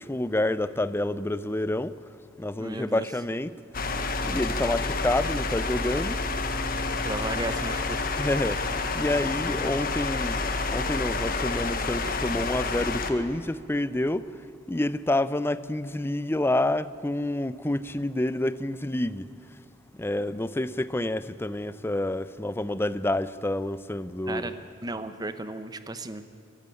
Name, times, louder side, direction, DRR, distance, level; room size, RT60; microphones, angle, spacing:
voice 1, 0.0-1.9 2.4-3.5 4.2-6.2 8.2-8.6 8.9-10.4 10.7-14.2 14.7-19.2 20.0-24.5, left 1 dB, 10° left, 0.5 m, -28 dB
voice 2, 2.6-3.1 7.0-8.0 24.3-26.2, right 2 dB, 20° right, 0.9 m, -35 dB
sound 1, 3.7-13.1, left 3 dB, 50° left, 1.3 m, -29 dB
23.5 x 12.5 x 9.7 m
head